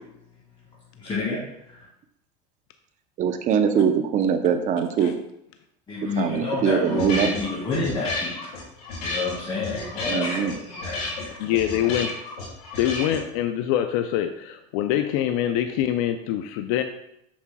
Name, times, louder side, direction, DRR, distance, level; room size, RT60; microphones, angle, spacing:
voice 1, 1.0-1.4 1.6-1.8 5.9-8.4 9.0-11.0, left 3 dB, 25° left, -7 dB, 2.1 m, -29 dB
voice 2, 3.2-5.1 6.2-7.3 10.1-10.5, right 7 dB, 40° right, 8 dB, 0.7 m, -22 dB
sound 1, 6.7-13.2, left 2 dB, 85° left, 2.3 m, -32 dB
voice 3, 11.4-12.2 12.8-16.8, left 11 dB, 65° left, 7 dB, 0.5 m, -24 dB
7.1 x 6.0 x 2.3 m, 0.78 s
supercardioid pair, 120°, 20 cm